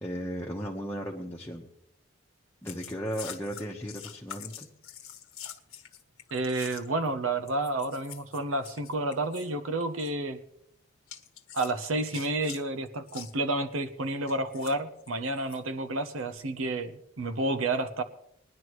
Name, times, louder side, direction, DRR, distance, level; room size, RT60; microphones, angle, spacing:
voice 1, 0.0-1.7 2.6-4.7, equal, 10° left, -2 dB, 1.0 m, -36 dB
sound 1, 2.7-7.1 7.5-9.5 9.8-10.1 11.1-12.6 13.1-13.3 14.3-15.6 16.2-16.4, left 9 dB, 85° left, 1.4 m, -45 dB
voice 2, 6.3-10.4 11.5-18.0, right 2 dB, 75° right, 10 dB, 0.8 m, -30 dB
21.0 x 11.0 x 3.1 m, 0.77 s
head